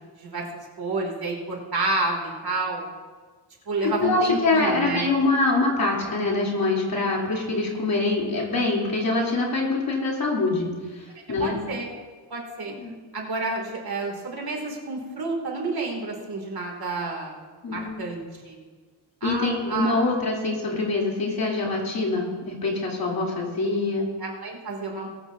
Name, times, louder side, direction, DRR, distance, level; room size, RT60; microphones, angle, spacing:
voice 1, 0.1-0.5 0.8-2.9 3.7-5.1 11.4-11.9 12.3-12.7 13.1-17.4 17.7-18.6 19.2-20.1 24.2-25.1, right 3 dB, 50° right, 0 dB, 2.7 m, -30 dB
voice 2, 4.0-11.6 12.8-12.9 17.6-17.9 19.2-24.1, left 3 dB, 50° left, -3 dB, 3.3 m, -24 dB
21.0 x 13.5 x 2.7 m, 1.5 s
wide cardioid pair, 130°, 46 cm